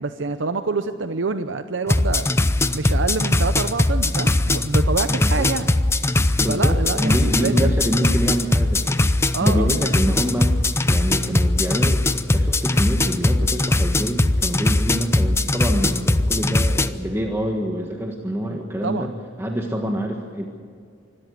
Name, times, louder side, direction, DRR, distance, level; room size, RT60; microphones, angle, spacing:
voice 1, 0.0-2.3 2.7-5.7 6.5-7.7 9.3-9.7 18.8-19.1, right 4 dB, 85° right, 10 dB, 0.8 m, -26 dB
sound 1, 1.9-16.9, left 2 dB, 15° left, 0.7 m, -20 dB
voice 2, 5.1-5.5 6.4-9.0 9.4-10.6 10.8-12.0 12.3-19.1 19.4-20.5, equal, 15° right, 2 dB, 1.5 m, -26 dB
25.0 x 13.5 x 9.5 m, 2.2 s
head